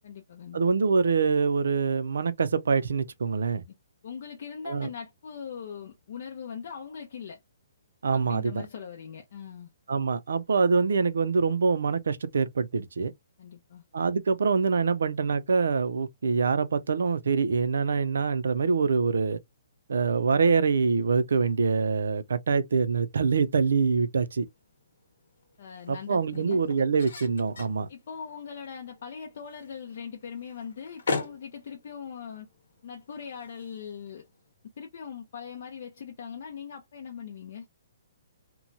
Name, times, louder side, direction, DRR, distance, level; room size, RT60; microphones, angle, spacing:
voice 1, 0.0-0.6 3.7-3.8 4.0-7.4 8.1-9.7 13.4-13.9 25.6-26.6 27.9-32.5 32.8-34.3 34.8-37.7, left 7 dB, 55° left, 0.5 m, -41 dB
voice 2, 0.5-3.6 4.7-4.9 8.0-8.7 9.9-13.1 13.9-19.4 19.9-24.5 25.9-27.9, right 5 dB, 85° right, 0.5 m, -25 dB
sound 1, 24.3-34.5, left 3 dB, 75° left, 1.0 m, -41 dB
2.9 x 2.2 x 2.5 m
hypercardioid pair, 170°, 0 cm